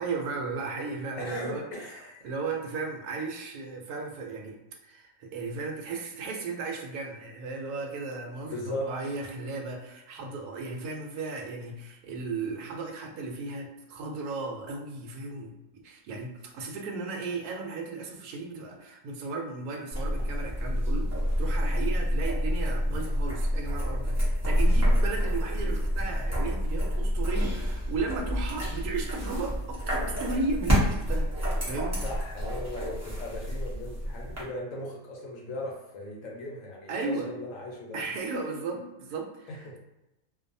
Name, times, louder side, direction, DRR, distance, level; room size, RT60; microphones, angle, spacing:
voice 1, 0.0-2.0 2.2-4.6 4.8-15.6 15.8-21.1 21.4-32.0 36.9-37.3 37.9-39.8, right 3 dB, 80° right, 2 dB, 1.1 m, -35 dB
voice 2, 1.2-2.3 8.5-8.9 32.0-38.0 39.5-39.8, left 1 dB, 65° left, -2 dB, 0.9 m, -38 dB
sound 1, 19.9-34.4, equal, 25° right, 0.4 m, -28 dB
2.5 x 2.2 x 2.6 m, 0.94 s
omnidirectional pair, 1.6 m